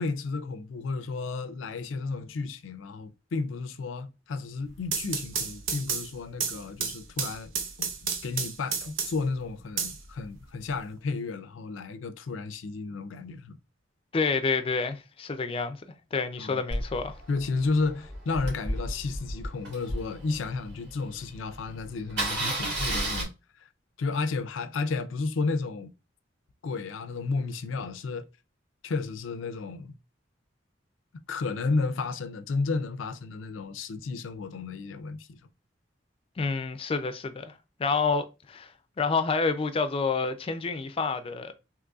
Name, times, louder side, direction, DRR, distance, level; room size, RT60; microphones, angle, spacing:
voice 1, 0.0-7.5 7.8-7.9 8.2-13.6 16.4-16.6 17.3-23.3 24.0-25.9 26.6-28.3 28.8-30.0 31.3-35.3, left 3 dB, 90° left, 0.4 m, -32 dB
sound 1, 4.7-9.3 9.8-10.7, right 6 dB, 85° right, 0.7 m, -32 dB
voice 2, 14.1-15.8 16.1-17.2 36.4-41.5, left 4 dB, 30° left, 0.4 m, -28 dB
Engine starting, 16.7-20.9 21.3-21.4 21.6-21.8 22.1-23.2, right 1 dB, 60° right, 2.0 m, -32 dB
3.8 x 3.0 x 2.3 m
head